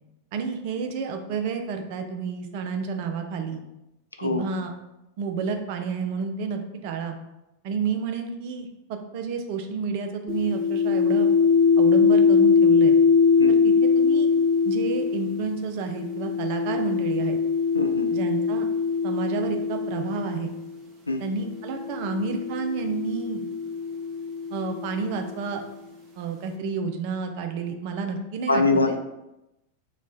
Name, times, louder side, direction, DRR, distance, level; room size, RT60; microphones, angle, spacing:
voice 1, 0.3-3.6 4.2-4.7 5.2-7.2 7.6-11.3 11.8-13.0 13.5-14.3 14.7-17.4 18.1-18.7 19.0-20.5 21.2-23.4 24.5-25.6 26.2-28.9, right 5 dB, 45° right, 5 dB, 0.4 m, -30 dB
sound 1, 10.3-20.6 21.5-25.3, left 5 dB, 30° right, 0.8 m, -22 dB
voice 2, 17.7-18.1 21.1-21.2 28.5-29.0, left 3 dB, 80° left, 5 dB, 0.3 m, -23 dB
3.0 x 2.2 x 4.0 m, 0.92 s
figure-of-eight pair, 90°, 0 cm